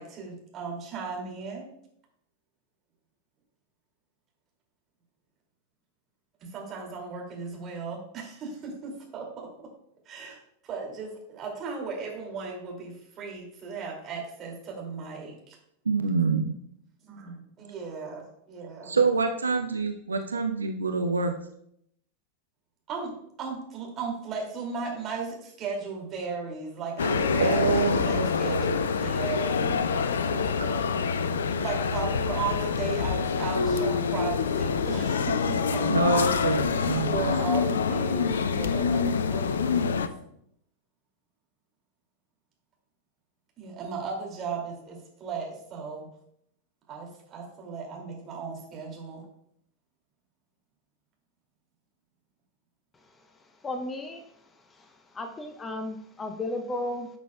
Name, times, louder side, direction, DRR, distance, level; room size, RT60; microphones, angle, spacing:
voice 1, 0.0-1.7 6.4-9.7 10.1-10.4 10.6-15.6 17.0-18.9 22.9-23.1 23.4-31.1 31.6-40.1 43.6-46.1 46.9-49.2, right 5 dB, 30° right, -1 dB, 2.5 m, -36 dB
voice 2, 15.9-16.4 18.9-21.3 27.4-28.7 35.9-37.3, right 4 dB, 75° right, 6 dB, 0.5 m, -26 dB
sound 1, 27.0-40.1, left 5 dB, 65° left, 0.4 m, -26 dB
voice 3, 53.6-54.2 54.8-54.9 55.1-57.1, left 1 dB, 15° left, 6 dB, 0.6 m, -34 dB
11.0 x 6.1 x 2.3 m, 0.73 s
figure-of-eight pair, 90°, 0 cm